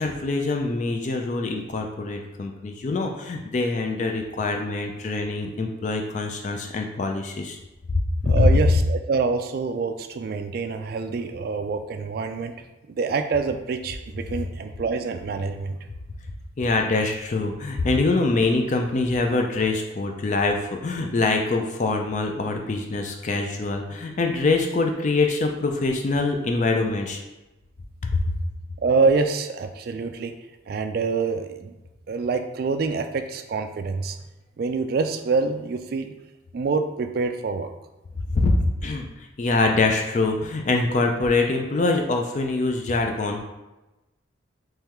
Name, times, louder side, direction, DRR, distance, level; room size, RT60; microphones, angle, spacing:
voice 1, 0.0-7.6 8.2-8.5 16.6-27.2 28.0-28.1 38.3-43.5, left 3 dB, 40° left, 3 dB, 0.3 m, -24 dB
voice 2, 8.3-12.5 12.9-15.8 28.8-30.3 30.7-31.7 32.1-34.2 34.6-36.1 36.5-37.7, right 4 dB, 50° right, 7 dB, 0.3 m, -26 dB
3.6 x 3.2 x 3.0 m, 1.0 s
head